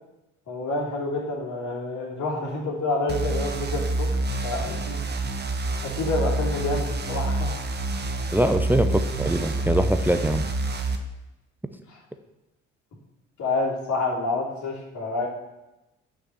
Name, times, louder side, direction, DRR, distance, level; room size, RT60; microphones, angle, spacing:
voice 1, 0.5-4.1 4.4-5.0 5.8-7.6 8.4-8.5 11.9-12.0 13.4-15.3, left 2 dB, 50° left, -2 dB, 2.9 m, -28 dB
sound 1, 3.1-11.0, right 2 dB, 25° right, 1.2 m, -27 dB
voice 2, 8.3-10.5, right 1 dB, 5° right, 8 dB, 0.6 m, -23 dB
6.0 x 6.0 x 6.5 m, 0.97 s
hypercardioid pair, 55°, 37 cm